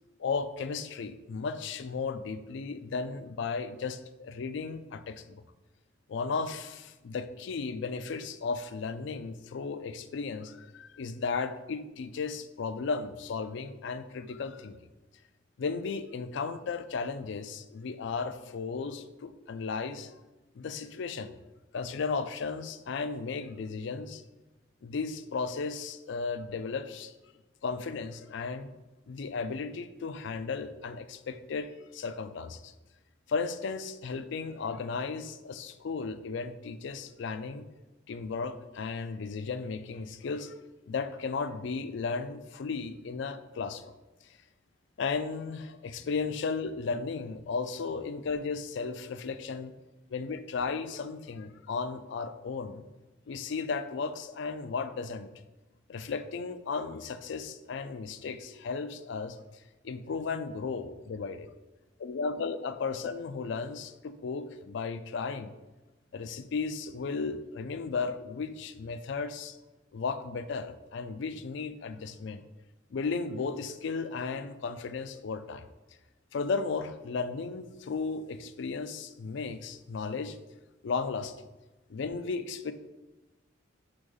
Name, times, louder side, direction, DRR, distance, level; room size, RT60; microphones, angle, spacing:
voice 1, 0.2-5.4 6.1-14.8 15.6-20.1 20.6-21.3 21.7-24.2 24.8-27.1 27.6-28.7 29.1-32.7 33.3-37.6 38.1-40.5 40.9-43.8 45.0-49.7 50.1-52.8 53.3-55.3 55.9-59.4 59.8-61.5 62.0-65.5 66.1-69.6 69.9-72.4 72.9-75.6 76.3-80.4 80.8-81.3 81.9-82.7, left 4 dB, 65° left, 12 dB, 0.4 m, -35 dB
5.1 x 3.5 x 5.4 m, 1.1 s
head